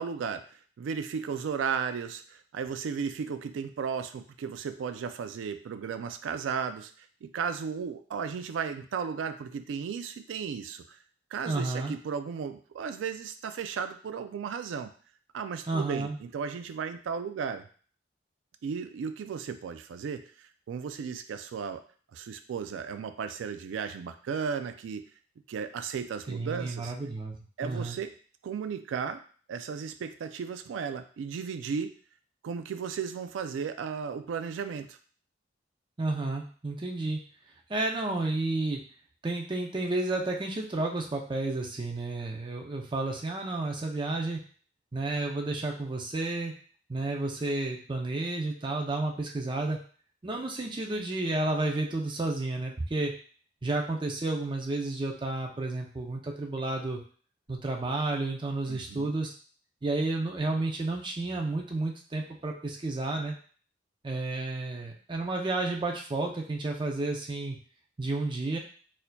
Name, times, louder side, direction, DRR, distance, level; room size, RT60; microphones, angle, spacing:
voice 1, 0.0-11.0 11.3-14.9 15.3-17.7 18.6-21.8 22.1-25.0 25.5-26.9 27.6-28.1 28.4-29.2 29.5-32.0 32.4-35.0 58.7-59.2, right 6 dB, 85° right, 9 dB, 0.3 m, -35 dB
voice 2, 11.5-12.0 15.7-16.2 26.3-27.3 27.6-28.0 36.0-37.2 37.7-38.8 39.2-44.4 44.9-46.5 46.9-49.8 50.2-53.1 53.6-57.0 57.5-59.3 59.8-63.3 64.0-67.6 68.0-68.6, right 2 dB, 25° right, 1 dB, 0.5 m, -31 dB
4.2 x 2.6 x 2.2 m, 0.43 s
head